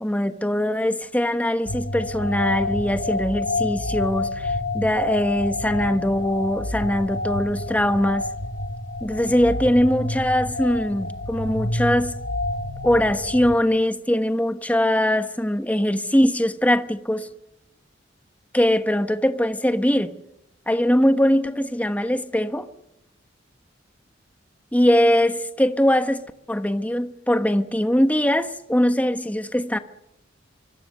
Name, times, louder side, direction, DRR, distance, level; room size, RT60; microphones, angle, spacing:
voice 1, 0.0-8.2 9.0-12.1 12.8-17.3 18.5-20.1 20.7-22.7 24.7-29.8, equal, 10° left, 1.2 m, -21 dB
sound 1, 1.7-13.5, left 2 dB, 80° left, 2.0 m, -29 dB
25.5 x 24.5 x 6.7 m
head